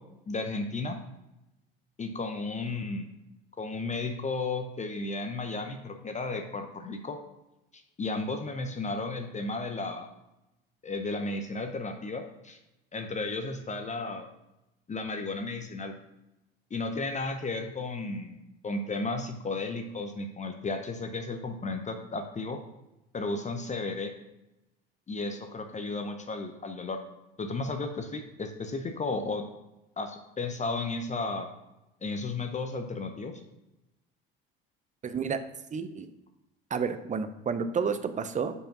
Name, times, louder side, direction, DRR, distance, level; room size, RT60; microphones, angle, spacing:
voice 1, 0.3-1.0 2.0-3.1 3.6-7.2 7.7-10.1 10.8-12.6 12.9-14.3 14.9-15.9 16.7-22.6 23.1-24.1 25.1-27.0 27.4-29.5 30.0-31.5 32.0-33.4, left 3 dB, 25° left, 5 dB, 0.8 m, -34 dB
voice 2, 35.0-35.4 35.7-36.1 36.7-38.5, right 6 dB, 25° right, 10 dB, 0.7 m, -30 dB
5.0 x 4.9 x 6.0 m, 0.92 s
hypercardioid pair, 65°, 29 cm